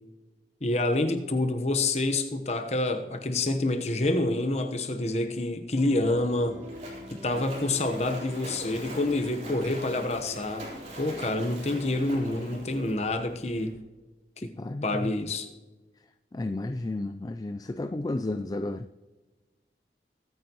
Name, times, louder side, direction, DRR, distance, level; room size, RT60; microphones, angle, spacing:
voice 1, 0.6-6.6 7.2-10.7 11.0-13.7 14.4-14.5 14.8-15.5, left 2 dB, 40° left, 1.1 m, -27 dB
sound 1, 5.8-12.5, left 1 dB, 15° right, 2.6 m, -46 dB
Splash splatter, 5.8-13.7, equal, 40° right, 3.8 m, -43 dB
voice 2, 14.6-15.1 16.3-18.9, left 2 dB, 20° left, 0.3 m, -32 dB
22.5 x 9.2 x 3.0 m
head